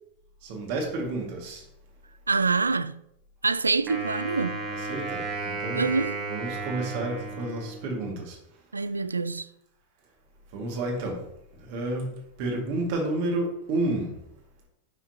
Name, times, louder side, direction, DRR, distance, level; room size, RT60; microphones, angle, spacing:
voice 1, 0.4-1.6 4.7-5.8 6.3-8.4 10.5-11.2 11.7-12.1 12.4-14.1, right 2 dB, 45° right, 2.1 m, -30 dB
voice 2, 2.3-3.0 3.4-4.6 5.7-6.2 8.7-9.5, right 4 dB, 80° right, 0.3 m, -25 dB
Wind instrument woodwind instrument, 3.9-8.2, right 3 dB, 30° right, 1.8 m, -34 dB
9.7 x 6.0 x 2.9 m
figure-of-eight pair, 90°, 0 cm